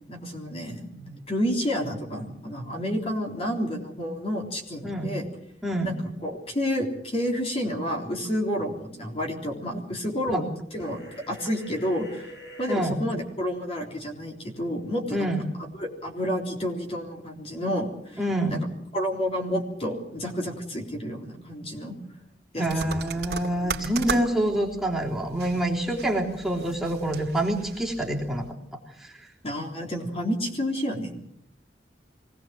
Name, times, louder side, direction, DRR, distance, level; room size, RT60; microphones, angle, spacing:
voice 1, 0.1-5.3 5.8-5.9 6.2-10.5 10.7-15.3 15.8-18.2 18.5-18.7 18.9-22.0 22.5-22.7 29.4-31.2, equal, 35° left, 1 dB, 3.7 m, -30 dB
voice 2, 5.6-6.0 10.3-10.4 12.7-13.0 15.1-15.5 18.2-18.6 22.6-28.5 29.0-29.3, right 1 dB, ahead, -3 dB, 3.4 m, -27 dB
sound 1, 10.7-12.8, equal, 80° left, 6.6 m, -44 dB
sound 2, 22.7-28.5, right 5 dB, 60° right, 2.4 m, -37 dB
24.0 x 18.0 x 7.7 m, 0.75 s
head